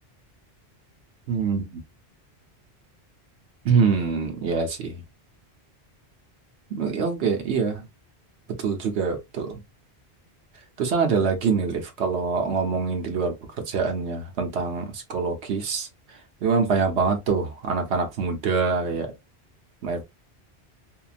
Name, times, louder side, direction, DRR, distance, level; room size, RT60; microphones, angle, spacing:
voice 1, 1.3-1.8 3.6-5.0 6.7-7.8 8.6-9.6 10.8-13.3 13.7-15.9 16.4-19.1 19.8-20.0, right 5 dB, 80° right, 1.0 m, -25 dB
2.8 x 2.2 x 2.4 m
omnidirectional pair, 1.1 m